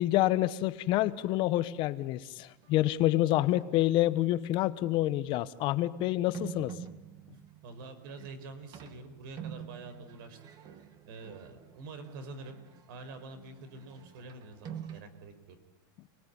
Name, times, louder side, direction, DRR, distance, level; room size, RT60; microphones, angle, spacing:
voice 1, 0.0-6.7, left 15 dB, 45° left, 14 dB, 1.2 m, -28 dB
sound 1, 2.5-3.0 3.4-4.0 4.7-4.8 6.3-15.0, right 8 dB, 35° right, 2.4 m, -47 dB
voice 2, 7.6-10.4 11.1-12.6 12.9-15.6, right 3 dB, 70° right, 10 dB, 5.2 m, -46 dB
29.0 x 19.5 x 10.0 m, 0.97 s
supercardioid pair, 145°, 12 cm